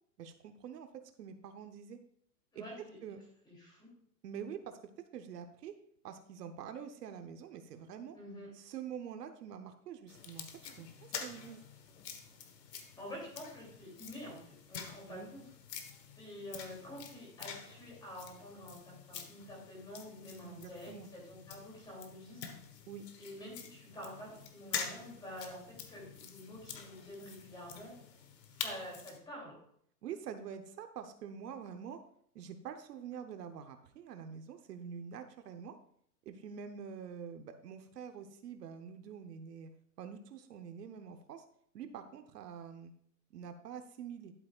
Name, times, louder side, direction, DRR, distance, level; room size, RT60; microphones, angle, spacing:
voice 1, 0.2-2.0 2.5-2.6 3.0-3.2 4.2-4.8 5.1-5.7 6.0-8.2 8.5-10.5 10.8-10.9 11.2-11.6 15.1-15.3 20.4-21.1 22.9-23.1 30.0-32.0 32.3-35.7 36.2-39.7 40.0-41.4 41.7-42.9 43.3-44.3, right 7 dB, 70° right, 7 dB, 1.0 m, -46 dB
voice 2, 2.5-3.0 3.4-3.9 8.1-8.5 13.0-15.4 16.1-22.4 23.2-27.9 28.5-29.5, equal, 10° left, -4 dB, 2.8 m, -48 dB
sound 1, 10.1-29.2, left 7 dB, 80° left, 1.5 m, -47 dB
11.5 x 8.4 x 2.4 m, 0.66 s
hypercardioid pair, 165°, 49 cm